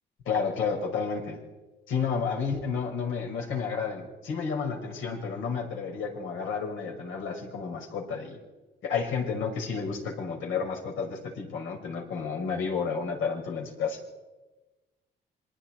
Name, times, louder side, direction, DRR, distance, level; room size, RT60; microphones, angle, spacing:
voice 1, 0.3-1.4 1.9-8.4 8.8-14.0, left 5 dB, 85° left, 1 dB, 5.9 m, -31 dB
27.0 x 23.5 x 4.6 m, 1.2 s
cardioid pair, 90°, 20 cm